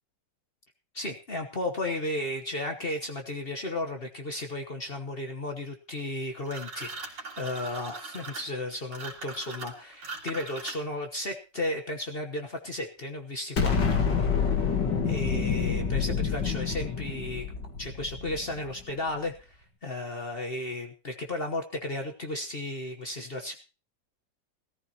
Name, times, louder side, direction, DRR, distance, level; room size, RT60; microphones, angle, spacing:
voice 1, 0.9-14.1 15.0-17.5 17.8-23.5, left 1 dB, 35° left, 4 dB, 1.2 m, -34 dB
sound 1, 6.5-11.1, right 3 dB, 80° right, 3.0 m, -40 dB
Explosion, 13.6-18.7, left 6 dB, 80° left, 2.5 m, -27 dB
18.0 x 14.0 x 2.9 m, 0.32 s
omnidirectional pair, 1.9 m